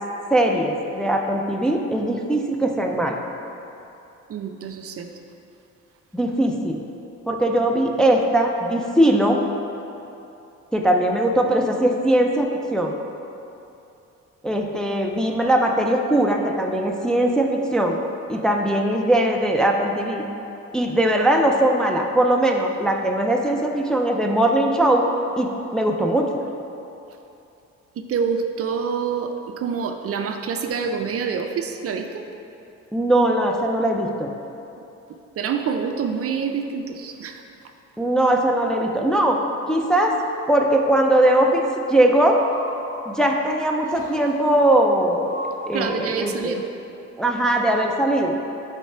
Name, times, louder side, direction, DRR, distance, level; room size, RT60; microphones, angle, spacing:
voice 1, 0.3-3.2 6.1-6.8 7.3-9.4 10.7-13.0 14.4-18.0 18.3-20.3 20.7-25.1 25.4-26.3 32.9-34.3 38.0-40.2 40.5-42.4 43.1-46.6 47.2-48.4, right 1 dB, ahead, 1 dB, 0.4 m, -20 dB
voice 2, 4.3-5.1 28.0-32.2 35.4-37.4 45.7-46.6, right 6 dB, 50° right, 5 dB, 0.5 m, -27 dB
Breathing, 42.2-43.4 43.8-44.5 45.2-46.3, right 1 dB, 30° right, 1.3 m, -36 dB
8.2 x 3.3 x 4.3 m, 2.8 s
cardioid pair, 90°, 30 cm